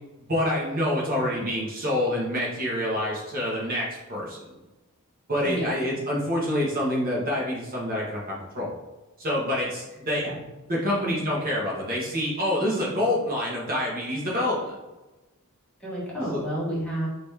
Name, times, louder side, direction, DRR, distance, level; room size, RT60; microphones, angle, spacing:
voice 1, 0.3-4.4 5.3-8.2 8.5-8.7 9.2-10.4 10.7-14.7 16.2-16.4, left 1 dB, 45° right, -5 dB, 1.2 m, -27 dB
voice 2, 15.8-17.1, right 1 dB, 5° left, -7 dB, 1.5 m, -30 dB
5.3 x 3.1 x 3.3 m, 1.1 s
head